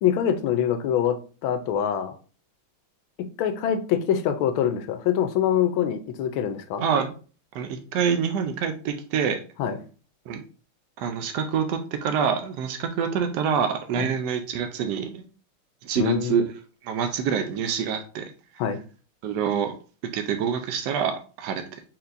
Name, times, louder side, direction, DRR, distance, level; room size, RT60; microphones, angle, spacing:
voice 1, 0.0-1.2 1.4-2.2 3.2-6.8 9.6-9.8 14.0-14.1 16.0-16.4 18.6-18.8, left 9 dB, 75° left, 8 dB, 1.3 m, -24 dB
voice 2, 6.8-7.1 7.5-9.4 10.3-10.4 11.0-15.2 15.8-16.4 16.8-18.3 19.2-19.7 20.1-21.8, right 7 dB, 85° right, 6 dB, 0.9 m, -26 dB
4.3 x 4.0 x 2.5 m, 0.37 s
omnidirectional pair, 2.3 m